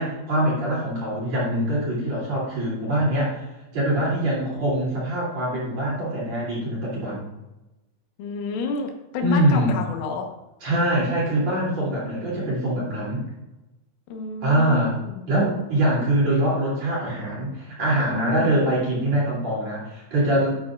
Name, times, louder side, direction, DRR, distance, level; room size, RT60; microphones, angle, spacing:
voice 1, 0.0-3.4 3.7-7.2 9.2-9.7 10.6-13.2 14.4-14.9 15.3-20.7, right 1 dB, 40° right, -6 dB, 3.6 m, -23 dB
voice 2, 8.2-10.3 14.1-15.3 18.1-18.7, left 5 dB, 85° left, 3 dB, 3.8 m, -30 dB
11.5 x 8.6 x 2.5 m, 0.99 s
omnidirectional pair, 5.5 m